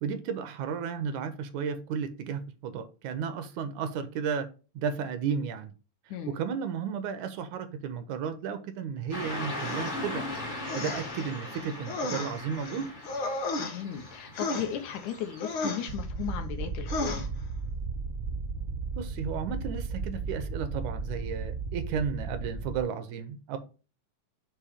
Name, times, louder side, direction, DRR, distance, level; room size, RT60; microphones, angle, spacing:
voice 1, 0.0-4.5 4.8-5.7 6.3-10.3 10.7-12.9 19.0-23.6, right 6 dB, 80° right, 2.0 m, -33 dB
Car passing by / Traffic noise roadway noise, 9.1-15.9, left 1 dB, 40° left, 0.7 m, -39 dB
sound 1, 9.5-10.0 10.7-11.2 11.5-14.1 14.3-15.1 15.4-15.9 16.9-17.3, left 2 dB, 55° left, 1.4 m, -34 dB
voice 2, 13.6-17.3, left 9 dB, 75° left, 2.1 m, -36 dB
sound 2, 15.9-22.8, right 4 dB, 60° right, 1.2 m, -35 dB
6.9 x 3.0 x 4.8 m
omnidirectional pair, 3.5 m